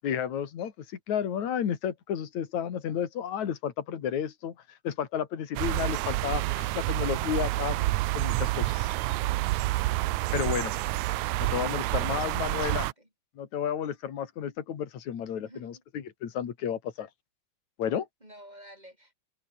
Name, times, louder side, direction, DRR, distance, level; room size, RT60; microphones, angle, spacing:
voice 1, 0.0-4.6 4.8-7.8 8.1-8.9 10.3-10.7 11.4-12.9 13.4-17.1 17.8-18.1, left 9 dB, 70° left, 3.7 m, -32 dB
sound 1, 5.6-12.9, right 18 dB, 80° right, 2.0 m, -28 dB
voice 2, 15.5-15.8 18.2-19.1, equal, 15° right, 7.1 m, -52 dB
omnidirectional pair, 3.4 m